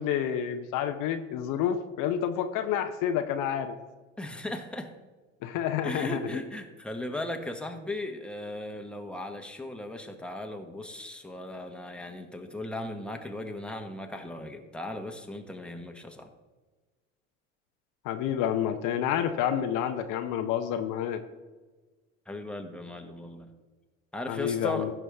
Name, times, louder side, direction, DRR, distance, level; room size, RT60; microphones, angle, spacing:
voice 1, 0.0-3.8 5.4-6.2 18.0-21.2 24.3-24.9, left 9 dB, 55° left, 7 dB, 0.9 m, -29 dB
voice 2, 4.2-4.9 5.8-16.3 22.3-23.5 24.1-24.9, left 1 dB, 5° left, 4 dB, 1.3 m, -37 dB
15.5 x 6.1 x 3.5 m, 1.3 s
hypercardioid pair, 75°, 38 cm